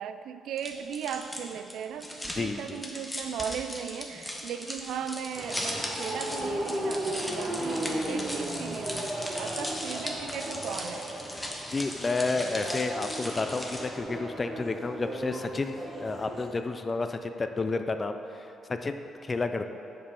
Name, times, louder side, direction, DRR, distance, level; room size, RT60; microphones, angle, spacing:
voice 1, 0.0-11.1, right 8 dB, 80° right, 10 dB, 0.3 m, -37 dB
sound 1, 0.6-14.0, left 1 dB, 10° left, 1.1 m, -38 dB
voice 2, 2.4-2.8 11.7-19.7, left 3 dB, 30° left, 8 dB, 0.4 m, -31 dB
sound 2, 5.3-16.5, right 1 dB, 25° right, 1.4 m, -35 dB
7.0 x 5.4 x 5.4 m, 2.9 s
cardioid pair, 90°, 0 cm